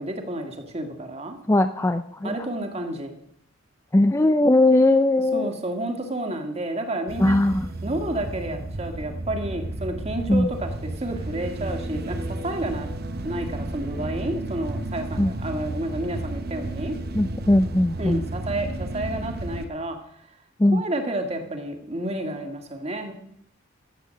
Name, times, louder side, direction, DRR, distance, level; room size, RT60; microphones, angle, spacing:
voice 1, 0.0-1.4 2.2-3.2 5.3-7.4 7.8-12.9 13.2-17.0 18.0-20.0 20.7-23.1, right 1 dB, 30° right, 4 dB, 1.9 m, -30 dB
voice 2, 1.5-2.3 3.9-5.5 7.2-7.7 10.3-10.5 15.2-15.3 17.1-18.3 20.6-20.8, left 1 dB, 15° left, 9 dB, 0.4 m, -19 dB
sound 1, 7.1-19.7, right 2 dB, 50° right, 1.0 m, -32 dB
14.0 x 8.5 x 6.5 m, 0.71 s
head